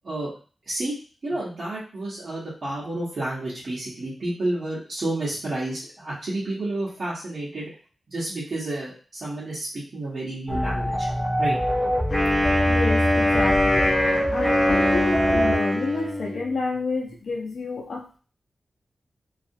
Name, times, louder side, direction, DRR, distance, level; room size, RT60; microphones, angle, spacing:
voice 1, 1.2-7.7 8.1-11.1 11.4-11.6, right 2 dB, 50° right, -9 dB, 0.8 m, -30 dB
sound 1, 10.5-15.6, equal, 10° right, 0.4 m, -24 dB
Wind instrument woodwind instrument, 12.1-16.5, left 1 dB, 30° left, 0.7 m, -23 dB
voice 2, 12.7-13.9 14.3-18.2, left 3 dB, 65° left, 0 dB, 0.6 m, -30 dB
2.4 x 2.0 x 2.6 m, 0.38 s
wide cardioid pair, 170°, 0 cm